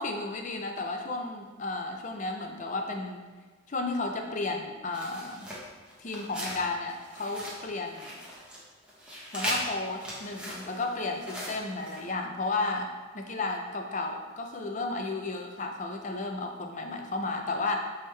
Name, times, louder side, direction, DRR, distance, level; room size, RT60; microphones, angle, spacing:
voice 1, 0.0-3.3 3.7-5.5 6.0-8.1 9.3-12.9 13.1-17.8, left 3 dB, 35° left, 3 dB, 0.5 m, -33 dB
sound 1, 4.9-6.6 6.9-8.6 8.8-12.0, equal, 5° right, 1.0 m, -38 dB
8.6 x 3.5 x 3.3 m, 1.4 s
head